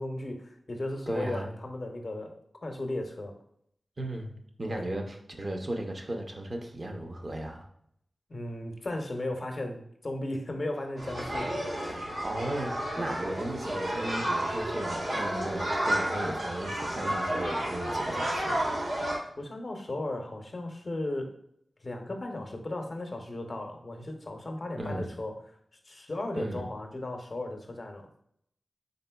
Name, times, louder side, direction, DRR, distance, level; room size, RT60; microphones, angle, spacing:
voice 1, 0.0-3.3 4.8-4.9 8.3-12.0 19.4-21.4 21.8-25.4 25.8-28.1, left 1 dB, 50° left, 3 dB, 0.6 m, -36 dB
voice 2, 1.1-1.5 4.0-7.7 12.2-18.6 24.8-25.1 26.3-26.6, right 1 dB, 45° right, 3 dB, 0.6 m, -36 dB
sound 1, 11.0-19.2, right 1 dB, 90° right, 1.2 m, -31 dB
3.9 x 3.7 x 2.2 m, 0.70 s
wide cardioid pair, 70°, 0 cm